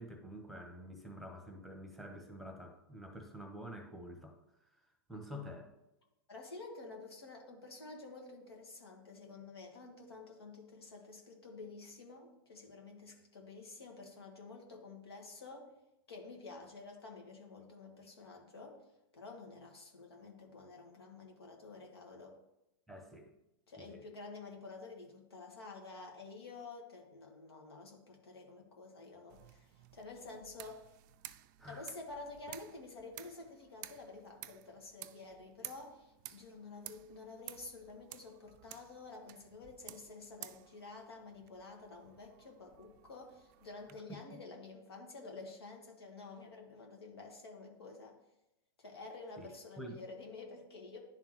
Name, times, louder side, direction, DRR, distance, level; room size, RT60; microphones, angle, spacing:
voice 1, 0.0-4.4 5.1-5.7 22.9-23.3 23.8-24.0 31.6-31.9 44.1-44.4 49.4-49.5 49.8-50.0, equal, ahead, 4 dB, 1.1 m, -48 dB
voice 2, 6.3-15.7 16.1-18.8 19.1-22.4 23.7-30.9 31.7-48.2 48.8-51.0, left 3 dB, 90° left, 1 dB, 1.7 m, -50 dB
sound 1, 29.3-43.9, right 14 dB, 50° right, 0.4 m, -54 dB
10.5 x 3.7 x 3.1 m, 0.89 s
hypercardioid pair, 120°, 13 cm